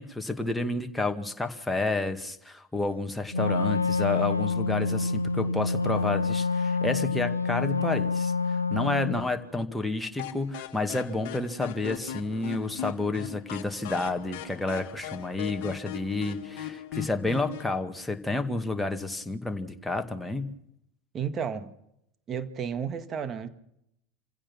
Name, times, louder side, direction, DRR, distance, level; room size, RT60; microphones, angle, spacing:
voice 1, 0.0-20.5, left 2 dB, 5° left, 2.0 m, -30 dB
Wind instrument woodwind instrument, 3.3-9.3, left 4 dB, 85° left, 0.9 m, -27 dB
sound 1, 10.2-17.7, left 10 dB, 60° left, 1.5 m, -39 dB
voice 2, 21.1-21.7 22.3-23.5, right 7 dB, 30° right, 1.8 m, -32 dB
27.0 x 16.0 x 6.1 m
figure-of-eight pair, 75°, 0 cm